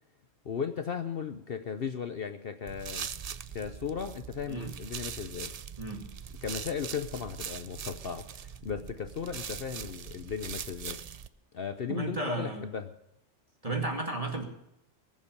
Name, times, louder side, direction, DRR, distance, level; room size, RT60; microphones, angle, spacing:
voice 1, 0.4-3.1 3.5-5.5 6.4-11.0 11.5-12.9, left 7 dB, 50° left, 8 dB, 0.9 m, -36 dB
sound 1, 2.7-11.3, right 7 dB, 55° right, 0.4 m, -41 dB
voice 2, 11.9-12.7 13.6-14.4, right 2 dB, 25° right, 3 dB, 2.3 m, -33 dB
21.0 x 7.5 x 6.6 m, 0.85 s
omnidirectional pair, 1.3 m